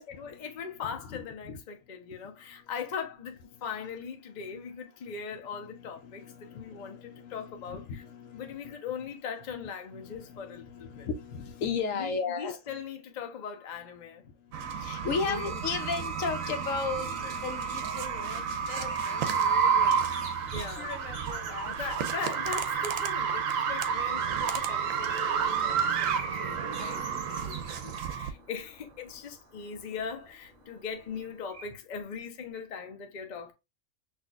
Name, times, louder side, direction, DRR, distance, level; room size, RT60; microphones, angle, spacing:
voice 1, 0.2-8.0 8.3-11.1 11.9-14.2 15.2-15.6 20.5-20.9 21.6-33.5, left 6 dB, 45° left, 0.7 m, -40 dB
voice 2, 5.5-8.7 9.0-9.1 9.9-12.6 14.8-20.0 20.8-21.7, left 5 dB, 75° left, 1.0 m, -36 dB
sound 1, 14.5-28.3, right 6 dB, 80° right, 1.0 m, -30 dB
sound 2, 15.7-31.6, right 2 dB, 35° right, 0.9 m, -47 dB
6.0 x 2.6 x 2.3 m
omnidirectional pair, 1.4 m